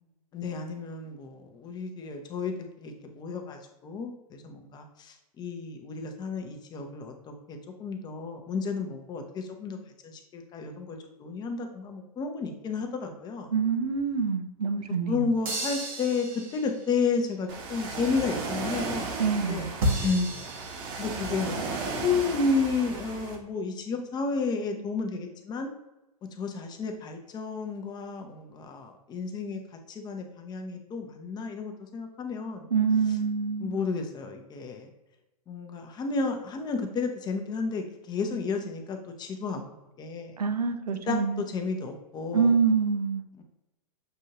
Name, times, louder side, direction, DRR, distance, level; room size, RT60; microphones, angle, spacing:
voice 1, 0.3-9.8 10.0-13.5 15.1-16.3 16.5-19.1 19.3-19.6 20.0-20.3 21.0-25.7 26.4-29.6 29.9-32.7 33.6-34.9 35.5-39.6 40.0-40.4 41.1-42.5 43.4-43.5, left 4 dB, 20° left, 4 dB, 0.7 m, -32 dB
voice 2, 13.5-15.3 19.2-19.7 32.7-33.8 40.4-41.4 42.3-43.2, right 5 dB, 80° right, 8 dB, 0.6 m, -26 dB
sound 1, 15.4-17.0 19.8-21.4, right 1 dB, 60° right, 1.2 m, -32 dB
Ocean, 17.5-23.4, right 4 dB, 40° right, 0.9 m, -35 dB
6.6 x 2.7 x 2.8 m, 0.98 s
figure-of-eight pair, 105°, 20 cm